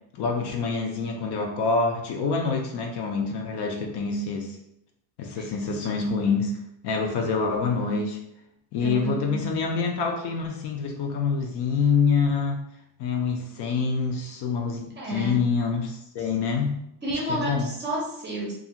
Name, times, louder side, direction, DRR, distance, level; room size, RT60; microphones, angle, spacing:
voice 1, 0.1-4.6 5.2-6.5 6.8-8.2 8.7-12.6 13.0-16.8 17.3-17.7, left 5 dB, 60° left, 2 dB, 0.6 m, -26 dB
voice 2, 8.8-9.6 15.0-15.5 16.2-16.3 17.0-18.5, right 2 dB, 25° right, -3 dB, 0.6 m, -31 dB
2.5 x 2.3 x 2.8 m, 0.76 s
cardioid pair, 155°, 47 cm